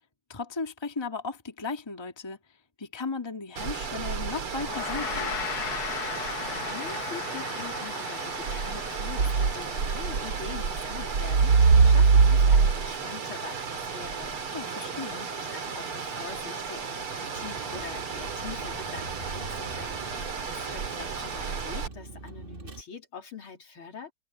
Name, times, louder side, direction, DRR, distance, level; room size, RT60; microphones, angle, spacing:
voice 1, 0.3-2.4 2.8-5.4 14.5-15.2, left 4 dB, 15° left, 1.8 m, -36 dB
sound 1, 3.6-21.9, right 5 dB, 80° right, 3.5 m, -27 dB
Gong, 4.6-14.1, left 8 dB, 55° left, 1.4 m, -39 dB
voice 2, 6.0-24.1, left 6 dB, 75° left, 4.1 m, -44 dB
Vehicle, 17.3-22.8, right 2 dB, 25° right, 1.7 m, -44 dB
omnidirectional pair, 2.4 m